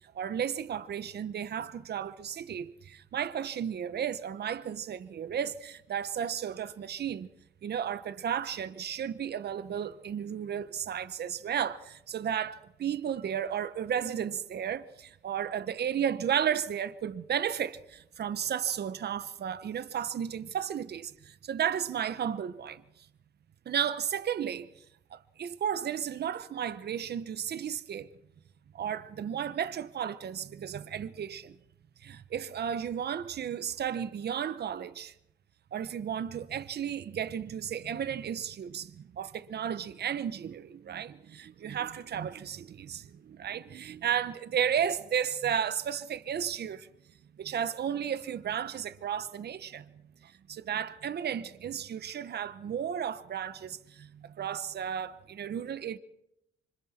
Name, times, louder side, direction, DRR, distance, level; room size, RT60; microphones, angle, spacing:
voice 1, 0.1-7.3 7.6-22.8 23.6-24.7 25.1-28.1 28.7-31.5 32.0-35.1 35.7-46.9 47.4-49.9 50.2-56.0, right 8 dB, 55° right, 1.2 m, -33 dB
28.0 x 25.5 x 4.5 m
cardioid pair, 90°, 20 cm